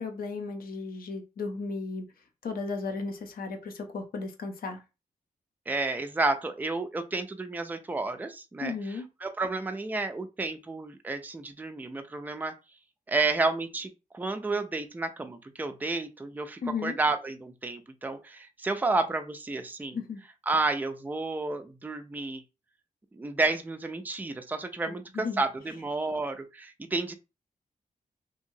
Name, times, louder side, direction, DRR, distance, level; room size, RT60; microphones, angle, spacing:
voice 1, 0.0-2.0 2.4-4.8 8.6-9.1 16.6-17.0 19.9-20.2 24.9-25.4, left 4 dB, 80° left, 5 dB, 0.7 m, -35 dB
voice 2, 5.7-8.7 9.2-12.5 13.1-20.0 20.5-22.4 23.1-27.1, right 3 dB, 10° right, 7 dB, 0.4 m, -31 dB
2.8 x 2.7 x 2.7 m, 0.28 s
wide cardioid pair, 105°, 15 cm